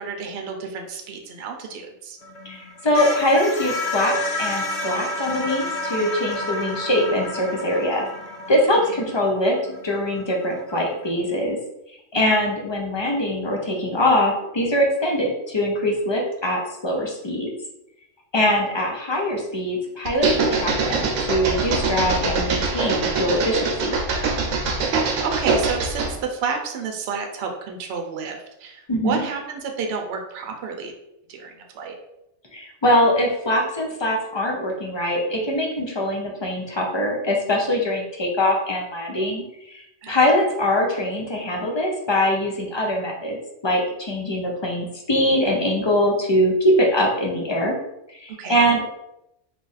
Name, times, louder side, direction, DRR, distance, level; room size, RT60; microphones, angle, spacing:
voice 1, 0.0-2.2 12.1-12.4 24.6-30.9 31.3-32.0 40.0-40.2 48.4-48.7, right 5 dB, 65° right, 3 dB, 0.8 m, -31 dB
sound 1, 2.2-11.1, left 1 dB, 70° left, 0.9 m, -30 dB
voice 2, 2.4-8.0 8.5-9.6 9.8-11.6 12.1-17.5 18.3-23.9 28.9-29.2 32.5-43.4 43.6-47.7 48.1-49.0, left 1 dB, 35° left, -1 dB, 0.4 m, -22 dB
sound 2, 20.1-26.2, right 4 dB, 90° right, 1.0 m, -23 dB
3.0 x 2.4 x 3.9 m, 0.84 s
omnidirectional pair, 1.3 m